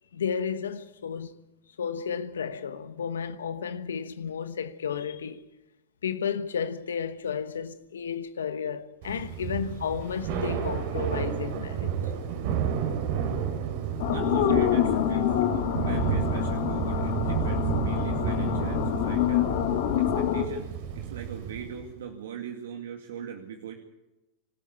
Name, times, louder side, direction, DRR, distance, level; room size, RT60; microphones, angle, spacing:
voice 1, 0.1-1.4 1.8-5.4 6.0-11.9, left 7 dB, 85° left, 1.1 m, -32 dB
Thunder / Rain, 9.0-21.9, right 8 dB, 65° right, 4.1 m, -31 dB
sound 1, 14.0-20.5, left 10 dB, 65° left, 3.0 m, -26 dB
voice 2, 14.1-15.3 15.8-19.5 20.0-20.7 21.0-23.7, right 7 dB, 80° right, 2.3 m, -40 dB
26.0 x 12.5 x 8.4 m
hypercardioid pair, 100°, 0 cm